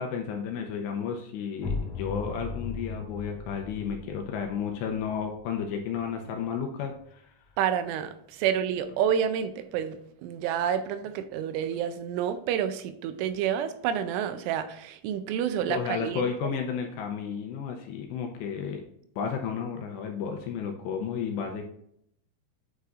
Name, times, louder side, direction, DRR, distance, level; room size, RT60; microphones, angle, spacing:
voice 1, 0.0-7.3 15.7-18.8 19.2-21.6, left 6 dB, 80° left, 2.6 m, -32 dB
sound 1, 1.6-7.1, left 4 dB, 55° left, 2.5 m, -38 dB
voice 2, 7.6-16.3, right 9 dB, 85° right, 3.1 m, -29 dB
9.3 x 4.8 x 2.5 m
omnidirectional pair, 5.5 m